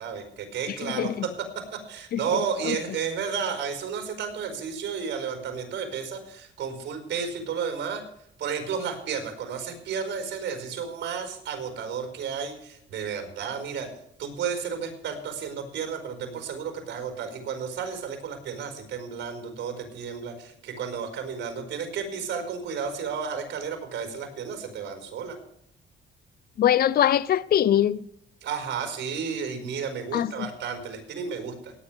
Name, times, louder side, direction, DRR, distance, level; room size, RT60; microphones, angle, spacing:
voice 1, 0.0-8.0 8.4-13.9 14.2-25.4 28.4-31.7, right 6 dB, 70° right, 4.9 m, -32 dB
voice 2, 1.0-1.3 2.1-2.2 26.6-28.0 30.1-30.5, left 11 dB, 50° left, 0.5 m, -22 dB
18.0 x 10.5 x 3.5 m
cardioid pair, 90°, 20 cm